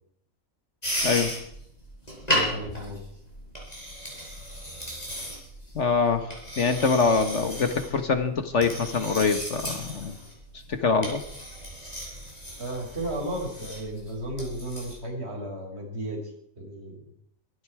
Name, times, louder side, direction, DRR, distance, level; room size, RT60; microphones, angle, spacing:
sound 1, 0.8-14.9, equal, 30° left, 6.0 m, -35 dB
voice 1, 1.0-1.4 5.7-10.2 10.7-11.2, left 5 dB, 55° left, 8 dB, 1.6 m, -24 dB
voice 2, 2.3-3.0 12.6-17.1, right 1 dB, 50° right, 0 dB, 5.1 m, -34 dB
23.5 x 12.0 x 4.9 m, 0.70 s
omnidirectional pair, 1.4 m